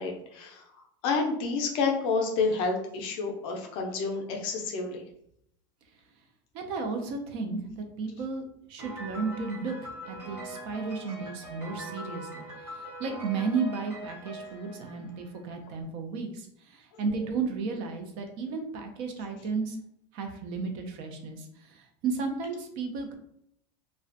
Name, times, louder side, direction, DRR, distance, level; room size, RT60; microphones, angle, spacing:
voice 1, 0.0-5.0, left 4 dB, 40° left, 2 dB, 0.4 m, -29 dB
voice 2, 6.5-8.4 8.7-9.7 10.1-19.8 20.1-23.1, right 4 dB, 45° right, 5 dB, 0.3 m, -33 dB
Piano, 8.8-15.6, right 1 dB, 15° right, 0.7 m, -42 dB
2.4 x 2.1 x 2.5 m, 0.72 s
supercardioid pair, 170°, 13 cm